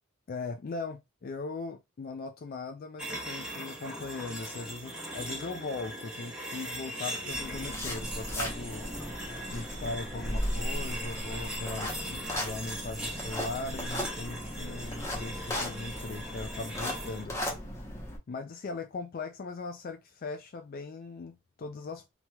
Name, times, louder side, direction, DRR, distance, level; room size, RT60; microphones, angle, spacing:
voice 1, 0.3-8.8 9.5-17.4 18.3-22.1, left 3 dB, 50° left, 0.4 m, -39 dB
sound 1, 3.0-17.2, right 1 dB, 5° right, 1.0 m, -40 dB
sound 2, 6.8-11.9, left 2 dB, 65° left, 0.9 m, -53 dB
sound 3, 7.3-18.2, left 1 dB, 15° left, 0.8 m, -37 dB
2.9 x 2.9 x 2.3 m
head